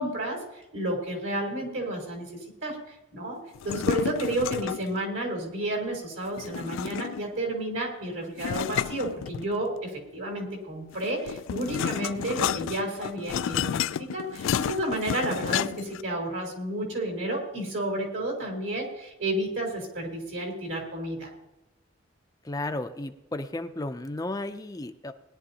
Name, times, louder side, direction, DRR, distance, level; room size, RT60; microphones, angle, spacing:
voice 1, 0.0-2.8 3.1-3.4 3.6-21.3, right 1 dB, 70° right, 0 dB, 4.0 m, -31 dB
sound 1, 3.5-4.9 6.4-7.4 8.4-9.8 10.9-16.0, left 9 dB, 75° left, 0.3 m, -31 dB
voice 2, 22.4-25.1, left 2 dB, 20° left, 7 dB, 0.5 m, -34 dB
20.0 x 11.0 x 2.8 m, 0.95 s
head